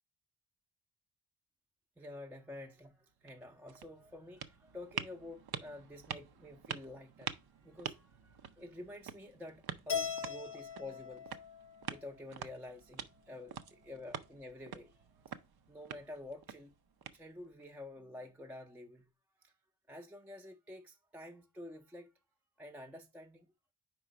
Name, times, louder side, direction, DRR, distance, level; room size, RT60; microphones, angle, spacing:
voice 1, 2.0-11.4 11.9-15.4 15.7-16.7 17.1-19.1 19.4-19.5 19.9-22.1 22.6-23.5, left 1 dB, 5° right, 0.5 m, -49 dB
sound 1, 3.1-17.6, right 8 dB, 55° right, 0.6 m, -47 dB
Keyboard (musical), 9.9-12.2, left 7 dB, 30° left, 0.8 m, -40 dB
4.8 x 4.6 x 4.9 m
wide cardioid pair, 110°, 46 cm